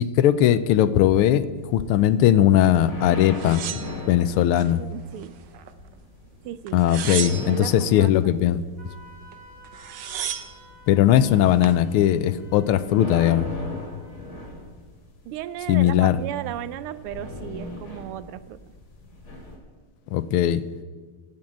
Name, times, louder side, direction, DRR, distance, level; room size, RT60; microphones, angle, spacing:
voice 1, 0.0-3.6 4.1-4.8 6.7-8.6 10.9-13.5 15.7-16.2 20.1-20.6, left 11 dB, 80° left, 14 dB, 1.5 m, -19 dB
sound 1, 1.6-19.6, left 2 dB, 60° left, 3.7 m, -40 dB
sound 2, 3.3-4.7 5.1-5.9 6.7-7.8 9.3-9.4 9.6-10.6 11.3-11.8, right 9 dB, 65° right, 1.3 m, -33 dB
voice 2, 4.7-5.4 6.4-8.1 15.2-18.6, right 12 dB, 85° right, 15 dB, 1.5 m, -35 dB
Wind instrument woodwind instrument, 8.8-14.5, right 1 dB, 10° left, 2.1 m, -52 dB
12.5 x 7.7 x 8.7 m, 1.5 s
omnidirectional pair, 2.4 m